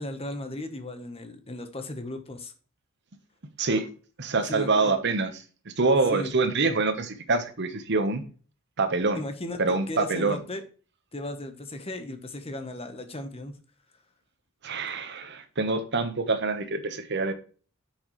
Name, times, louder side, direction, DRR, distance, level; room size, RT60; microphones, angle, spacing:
voice 1, 0.0-2.5 4.5-5.0 6.1-6.3 9.1-10.6 11.1-13.5, left 1 dB, 25° left, 1.1 m, -36 dB
voice 2, 3.6-3.9 4.2-5.3 5.7-8.2 8.8-9.2 9.6-10.4 14.6-17.3, right 3 dB, 50° right, 1.1 m, -25 dB
8.6 x 6.3 x 3.2 m
head